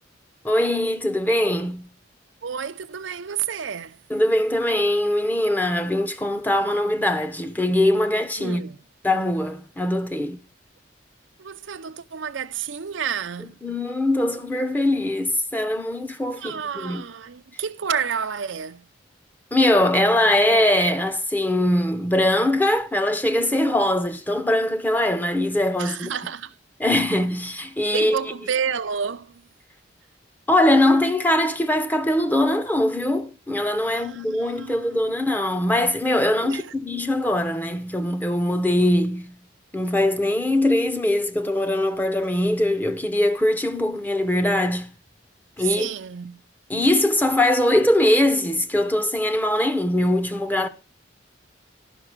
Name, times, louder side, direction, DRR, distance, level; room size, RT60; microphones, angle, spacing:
voice 1, 0.4-1.9 4.1-8.7 9.0-10.4 13.6-17.0 19.5-26.1 26.8-28.2 30.5-39.4 39.7-44.9 45.6-45.9 46.7-50.7, left 1 dB, 10° left, 0.7 m, -22 dB
voice 2, 2.4-4.0 8.4-8.8 11.4-13.6 16.3-18.8 25.8-26.5 27.9-29.4 33.8-35.0 36.4-36.7 45.6-46.4, right 7 dB, 75° right, 0.6 m, -30 dB
12.0 x 5.8 x 6.1 m
head